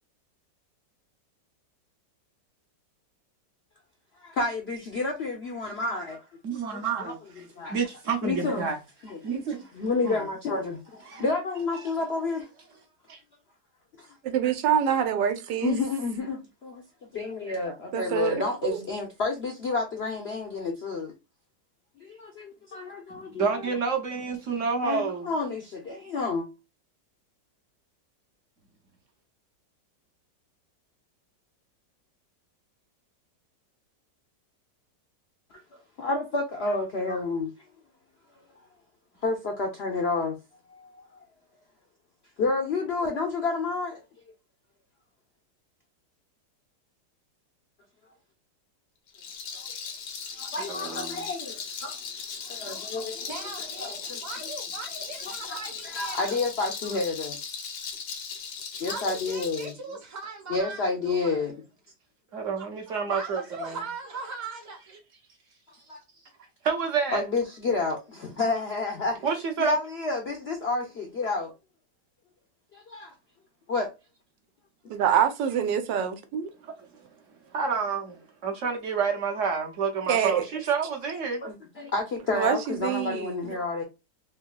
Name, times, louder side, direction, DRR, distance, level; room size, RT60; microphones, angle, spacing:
voice 1, 4.2-6.2 6.7-7.1 7.6-7.8 8.2-8.7 9.0-9.2 9.7-12.5 14.0-14.1 15.6-16.8 17.1-21.1 22.0-23.6 24.8-26.5 36.0-37.5 39.2-40.4 40.7-41.0 42.4-44.0 49.5-49.6 50.4-52.0 52.4-53.3 53.8-54.2 55.5-55.6 55.8-57.4 58.8-59.7 60.5-61.5 65.9-66.0 67.1-69.3 69.6-71.5 72.7-73.1 73.7-73.9 81.4-83.8, left 3 dB, 65° left, 0.6 m, -30 dB
voice 2, 6.4-8.8 9.2-9.7 10.0-10.2 11.1-11.2 13.1-13.2 23.1-25.3 50.7-51.2 62.3-63.8 66.6-67.3 69.2-69.8 76.6-76.7 77.5-81.4, right 5 dB, 55° right, 1.0 m, -29 dB
voice 3, 14.2-15.8 17.9-18.8 74.9-76.5 80.1-80.4 82.3-83.6, right 8 dB, 85° right, 1.3 m, -26 dB
Rattle, 49.1-59.7, left 6 dB, 85° left, 1.5 m, -38 dB
voice 4, 53.3-56.4 58.8-61.6 62.5-65.0, right 4 dB, 15° right, 0.6 m, -40 dB
3.6 x 2.8 x 2.2 m
omnidirectional pair, 1.9 m